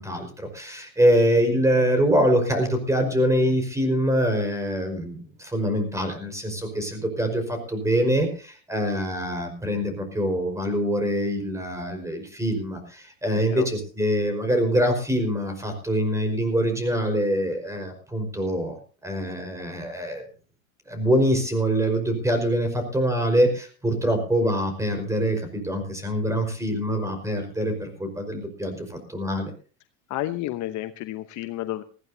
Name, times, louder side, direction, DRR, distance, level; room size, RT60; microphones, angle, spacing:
voice 1, 0.0-18.8 19.0-20.2 20.9-29.5, equal, 5° right, 6 dB, 5.0 m, -24 dB
voice 2, 13.4-13.7 30.1-31.8, left 15 dB, 45° left, 10 dB, 1.0 m, -31 dB
20.0 x 15.5 x 2.8 m, 0.37 s
hypercardioid pair, 95°, 40 cm